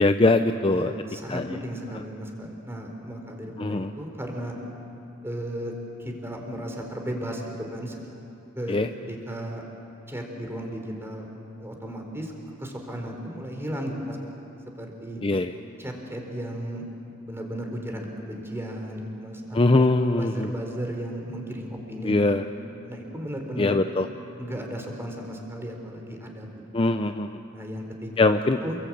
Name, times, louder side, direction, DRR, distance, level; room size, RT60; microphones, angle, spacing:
voice 1, 0.0-0.9 1.3-1.6 3.6-3.9 8.7-8.9 15.2-15.5 19.5-20.5 22.0-22.4 23.6-24.1 26.7-27.4 28.2-28.6, left 2 dB, 25° left, 8 dB, 0.6 m, -22 dB
voice 2, 0.7-4.5 5.2-5.7 6.0-8.0 8.6-8.8 9.1-9.6 10.1-11.3 11.6-12.3 12.6-14.2 14.8-15.2 15.8-16.8 17.2-19.8 20.1-22.4 22.8-23.8 24.4-26.8 27.5-28.8, equal, 10° right, 2 dB, 3.9 m, -35 dB
28.5 x 22.5 x 8.6 m, 2.8 s
head